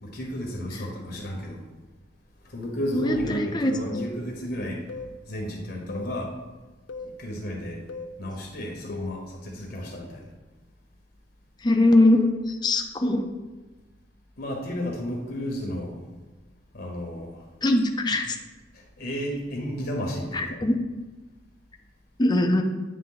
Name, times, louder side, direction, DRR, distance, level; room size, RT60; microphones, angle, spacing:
voice 1, 0.0-1.7 2.4-4.8 5.3-6.3 7.2-7.8 8.2-10.3 14.4-16.0 16.7-17.4 18.7-20.7, equal, 55° left, 0 dB, 1.0 m, -33 dB
voice 2, 2.9-4.0 11.6-13.2 17.6-18.4 20.3-20.7 22.2-22.6, left 1 dB, 25° left, 4 dB, 0.5 m, -22 dB
sound 1, 3.9-4.1 4.9-5.1 5.9-6.1 6.9-7.1 7.9-8.1 8.9-9.2, left 4 dB, 70° left, 0.4 m, -37 dB
8.5 x 3.4 x 3.9 m, 1.2 s
head